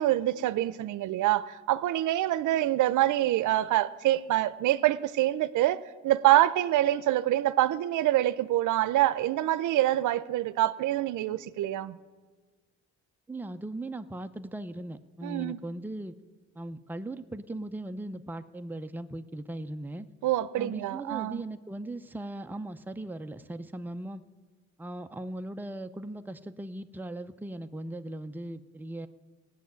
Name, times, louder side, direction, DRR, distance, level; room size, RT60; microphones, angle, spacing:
voice 1, 0.0-12.0 15.2-15.6 20.2-21.4, right 14 dB, 80° right, 0.6 m, -26 dB
voice 2, 13.3-16.1 16.6-20.1 20.6-24.2 24.8-29.1, right 1 dB, 5° right, 0.6 m, -38 dB
17.0 x 6.5 x 9.3 m
cardioid pair, 90°, 30 cm